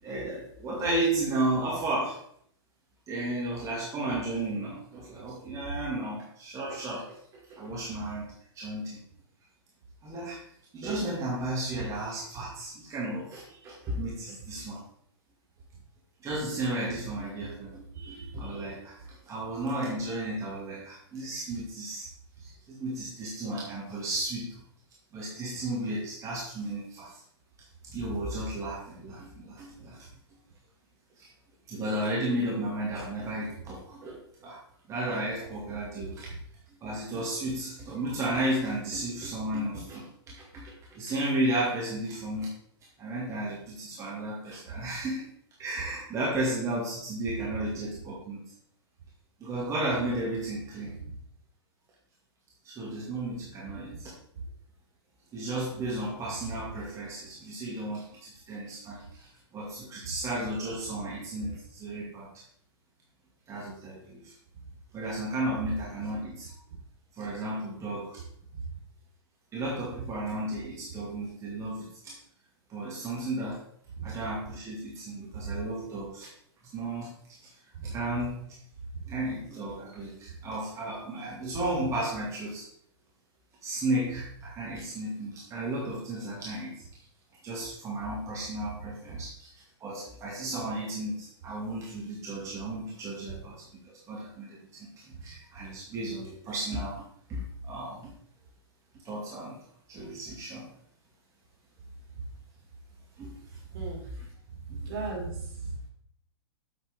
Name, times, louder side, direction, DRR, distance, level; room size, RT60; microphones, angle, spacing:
voice 1, 0.0-2.2 3.1-9.0 10.0-10.4 10.7-14.8 16.2-22.1 22.4-24.6 25.1-27.2 27.8-30.1 31.2-31.3 31.7-34.6 34.9-36.3 36.8-42.5 43.0-45.3 45.6-48.4 49.4-51.0 52.6-54.1 55.3-62.3 63.5-64.3 64.9-66.5 67.1-68.2 69.5-72.1 72.7-73.6 74.0-76.3 76.7-77.5 77.8-78.4 79.1-82.7 83.6-86.8 87.4-89.5 89.8-97.0 97.3-98.1 99.0-99.6 99.9-100.7 103.2-103.6 104.0-104.3 104.8-104.9, right 1 dB, 20° right, -4 dB, 2.2 m, -34 dB
voice 2, 104.7-105.7, right 4 dB, 55° right, -2 dB, 4.0 m, -36 dB
8.5 x 7.4 x 3.6 m, 0.65 s
figure-of-eight pair, 110°, 14 cm